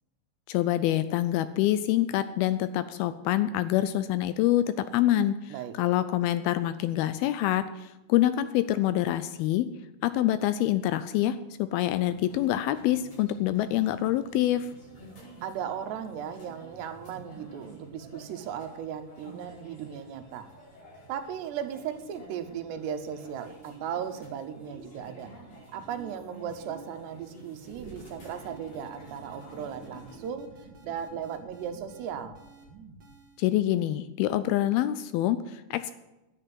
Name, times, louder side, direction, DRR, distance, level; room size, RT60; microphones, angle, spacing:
voice 1, 0.5-4.7 4.9-9.7 10.0-14.7 33.4-35.9, left 13 dB, 80° left, 13 dB, 2.3 m, -26 dB
sound 1, 11.8-30.2, right 1 dB, 55° left, 7.2 m, -49 dB
voice 2, 15.4-20.5 21.1-25.3 25.7-30.5 30.8-32.4, right 8 dB, 90° right, 8 dB, 3.2 m, -37 dB
sound 2, 27.7-33.4, right 3 dB, 35° right, 2.1 m, -50 dB
10.5 x 9.9 x 7.7 m, 1.0 s
omnidirectional pair, 4.7 m